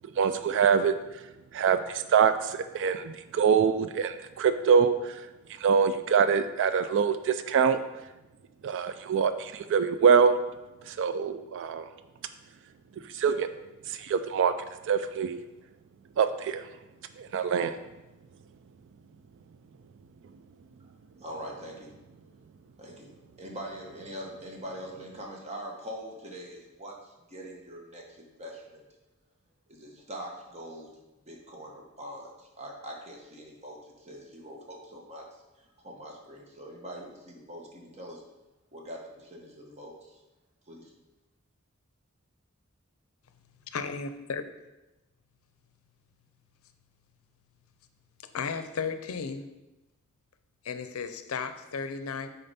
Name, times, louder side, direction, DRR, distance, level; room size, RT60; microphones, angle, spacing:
voice 1, 0.2-0.9 1.5-5.2 5.6-7.8 8.6-10.4 10.9-11.9 13.1-13.5 13.9-14.5 14.9-15.4 16.2-16.6 17.2-17.8, right 6 dB, 60° right, 10 dB, 0.3 m, -24 dB
voice 2, 21.2-21.9 22.2-22.3 22.8-23.1 23.4-28.8 29.7-30.9 31.3-35.2 35.6-38.2 38.7-40.2 40.7-40.9, equal, 30° right, 0 dB, 1.1 m, -43 dB
voice 3, 43.7-44.4 48.3-49.5 50.6-52.3, left 5 dB, 75° left, 9 dB, 0.5 m, -34 dB
6.7 x 4.3 x 4.2 m, 1.0 s
head